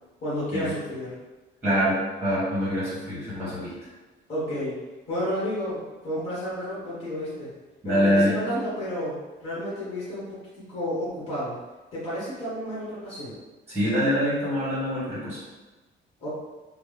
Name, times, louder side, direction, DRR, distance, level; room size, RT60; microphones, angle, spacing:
voice 1, 0.2-1.1 4.3-4.8 5.1-7.5 7.8-11.6 11.9-13.3 16.2-16.3, equal, 30° left, -9 dB, 1.2 m, -31 dB
voice 2, 1.6-3.7 7.8-8.4 13.7-15.4, equal, 10° right, -9 dB, 1.3 m, -24 dB
3.1 x 2.0 x 3.4 m, 1.2 s
cardioid pair, 160°, 20 cm